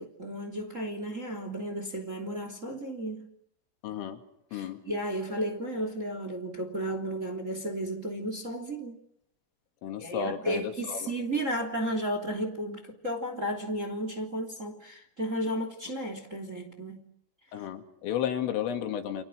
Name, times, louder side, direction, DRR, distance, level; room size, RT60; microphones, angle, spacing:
voice 1, 0.0-3.3 4.5-9.0 10.0-17.0, right 1 dB, 20° right, 2.7 m, -33 dB
voice 2, 3.8-4.2 4.5-4.8 9.8-10.6 10.9-11.1 17.5-19.2, left 9 dB, 80° left, 4.9 m, -33 dB
30.0 x 27.5 x 6.3 m
omnidirectional pair, 5.8 m